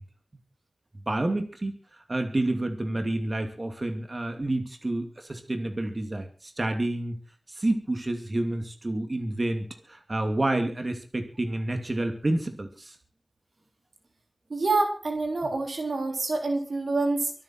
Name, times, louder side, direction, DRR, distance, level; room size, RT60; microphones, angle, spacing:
voice 1, 1.1-7.1 7.5-13.0 15.4-15.5, right 1 dB, 40° right, 5 dB, 2.5 m, -29 dB
voice 2, 14.5-17.3, right 3 dB, 80° right, 4 dB, 3.5 m, -27 dB
24.0 x 9.0 x 4.5 m, 0.38 s
wide cardioid pair, 75°, 0 cm